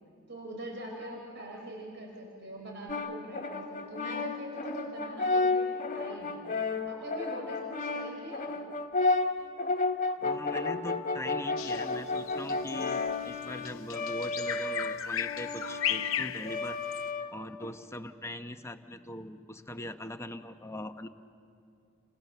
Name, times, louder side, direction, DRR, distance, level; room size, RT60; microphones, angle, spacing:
voice 1, 0.3-6.4 6.9-8.5, right 1 dB, 55° right, 0 dB, 4.4 m, -43 dB
Brass instrument, 2.9-17.7, left 3 dB, 40° left, 1.4 m, -32 dB
voice 2, 10.2-16.8 17.3-21.1, left 1 dB, 15° left, 8 dB, 0.9 m, -41 dB
Bird vocalization bird call bird song, 11.6-17.1, left 10 dB, 80° left, 0.7 m, -35 dB
30.0 x 26.5 x 6.9 m, 2.5 s
head